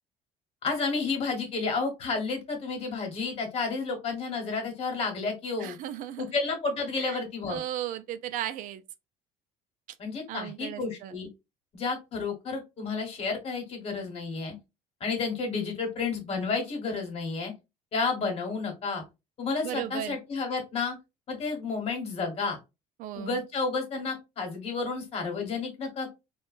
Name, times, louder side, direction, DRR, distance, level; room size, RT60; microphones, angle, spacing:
voice 1, 0.6-5.8 6.2-7.6 10.0-11.3 11.7-14.5 15.0-17.5 17.9-19.0 19.4-20.9 21.3-22.6 23.1-26.1, left 4 dB, 40° left, 1.4 m, -31 dB
voice 2, 5.6-6.3 7.0-7.2 7.5-8.8 10.3-11.1 19.6-20.2 23.0-23.4, right 12 dB, 65° right, 0.4 m, -36 dB
3.6 x 2.3 x 2.5 m
cardioid pair, 140°, 15 cm